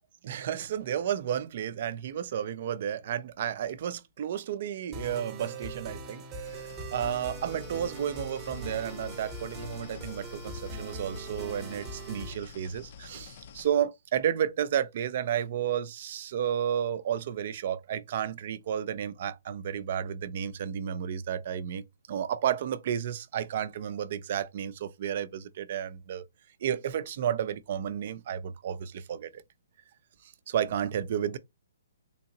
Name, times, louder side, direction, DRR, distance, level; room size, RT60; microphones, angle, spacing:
voice 1, 0.2-21.8 22.1-26.2 26.6-29.4 30.5-31.4, right 9 dB, 50° right, 0.4 m, -32 dB
sound 1, 4.9-12.3, right 2 dB, 25° right, 0.9 m, -41 dB
sound 2, 6.4-13.7, left 7 dB, 50° left, 0.4 m, -48 dB
3.6 x 2.8 x 2.7 m
hypercardioid pair, 145°, 0 cm